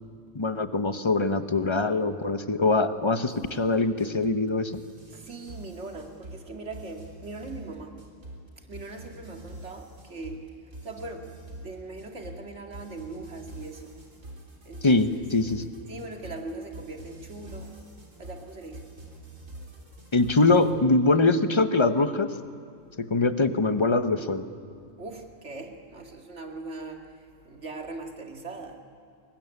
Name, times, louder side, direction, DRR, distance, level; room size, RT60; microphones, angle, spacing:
voice 1, 0.3-4.8 14.8-15.7 20.1-22.3 23.0-24.5, left 3 dB, 25° left, 10 dB, 1.0 m, -23 dB
sound 1, 3.3-20.7, right 2 dB, 85° right, 4.1 m, -45 dB
voice 2, 5.1-8.0 8.6-10.5 10.8-13.9 14.6-15.2 15.6-17.8 18.2-18.8 25.0-28.8, right 3 dB, 60° right, 3 dB, 2.6 m, -40 dB
23.5 x 21.0 x 9.8 m, 2.4 s
omnidirectional pair, 1.3 m